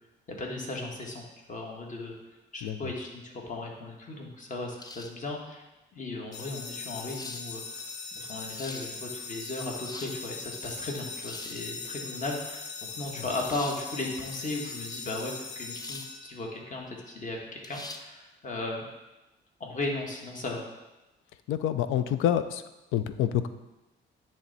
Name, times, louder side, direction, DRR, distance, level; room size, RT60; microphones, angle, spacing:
voice 1, 0.3-2.1 2.5-5.6 5.9-12.6 13.0-18.8 19.6-20.6, left 2 dB, 40° left, 0 dB, 1.5 m, -36 dB
sound 1, 4.8-5.3 6.3-6.4 7.1-7.5 8.3-8.9 9.6-10.2 11.2-11.7 13.4-13.8 15.7-16.1 16.5-16.6 17.6-18.1, left 2 dB, 20° left, 0.5 m, -44 dB
sound 2, 6.3-16.7, left 4 dB, 60° left, 0.8 m, -40 dB
voice 2, 21.5-22.6 22.9-23.5, left 10 dB, 90° left, 11 dB, 0.4 m, -27 dB
10.0 x 3.4 x 4.0 m, 1.0 s
cardioid pair, 90°, 20 cm